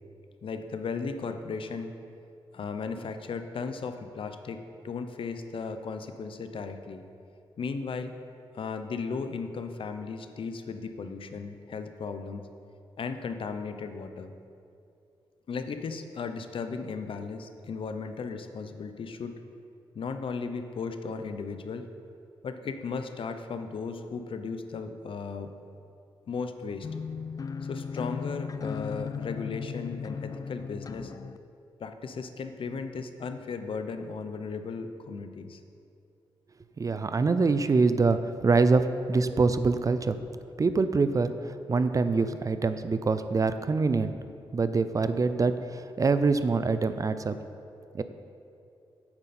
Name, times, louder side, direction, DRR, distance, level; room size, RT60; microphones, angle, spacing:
voice 1, 0.4-1.9 2.5-7.0 7.6-8.1 8.5-12.4 13.0-14.3 15.5-19.4 19.9-21.9 22.4-25.5 26.3-26.9 27.6-31.1 31.8-35.6, left 5 dB, 65° left, 8 dB, 0.7 m, -36 dB
sound 1, 26.8-31.4, left 6 dB, 40° left, 0.4 m, -36 dB
voice 2, 36.8-40.2 40.6-41.3 41.7-44.1 44.5-47.4 47.9-48.0, right 4 dB, 35° right, 11 dB, 0.5 m, -25 dB
9.6 x 8.8 x 4.3 m, 2.5 s
cardioid pair, 80°, 10 cm